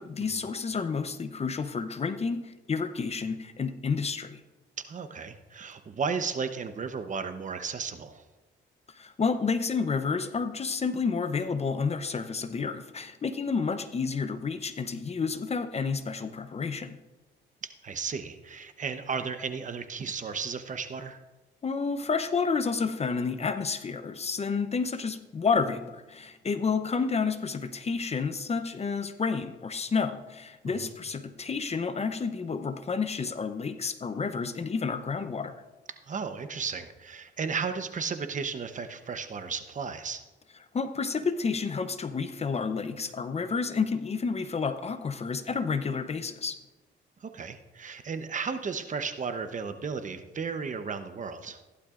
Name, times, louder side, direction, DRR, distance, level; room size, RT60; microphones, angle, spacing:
voice 1, 0.0-4.4 8.9-17.0 21.6-35.5 40.7-46.6, left 5 dB, 30° left, 10 dB, 0.7 m, -30 dB
voice 2, 4.8-8.2 17.6-21.2 30.6-30.9 36.1-40.2 47.2-51.6, right 5 dB, 40° right, 9 dB, 0.9 m, -34 dB
15.0 x 11.5 x 2.5 m, 1.1 s
cardioid pair, 90°, 20 cm